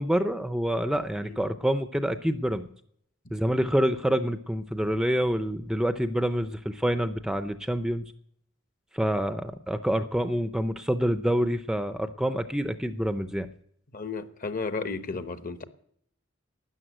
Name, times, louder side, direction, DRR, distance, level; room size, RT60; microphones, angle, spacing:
voice 1, 0.0-2.7 3.3-8.0 8.9-13.5, equal, 5° right, 0.5 m, -27 dB
voice 2, 13.9-15.6, left 4 dB, 45° left, 1.1 m, -33 dB
13.0 x 9.4 x 9.0 m
head